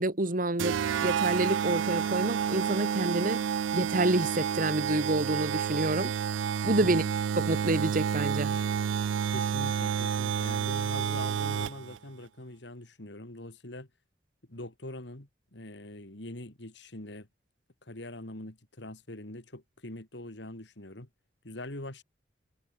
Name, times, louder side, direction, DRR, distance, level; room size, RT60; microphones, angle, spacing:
voice 1, 0.0-3.4 3.7-6.1 6.6-7.0 7.4-8.6, right 2 dB, 45° right, 1.9 m, -28 dB
sound 1, 0.6-12.0, right 7 dB, 80° right, 0.4 m, -30 dB
voice 2, 6.8-7.1 9.3-13.9 14.5-17.3 17.8-21.1 21.4-22.0, left 1 dB, 65° left, 2.8 m, -43 dB
head